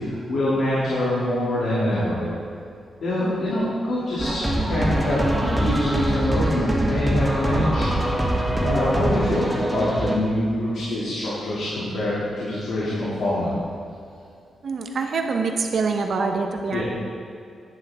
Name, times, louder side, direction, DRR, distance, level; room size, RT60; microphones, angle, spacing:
voice 1, 0.0-2.2 3.0-7.9 8.6-13.5 16.7-16.8, left 1 dB, 75° left, -8 dB, 2.7 m, -25 dB
sound 1, 4.2-10.2, right 1 dB, ahead, 1.6 m, -23 dB
voice 2, 14.6-16.8, right 4 dB, 60° right, 4 dB, 1.1 m, -25 dB
11.5 x 10.5 x 3.7 m, 2.5 s
cardioid pair, 95°, 0 cm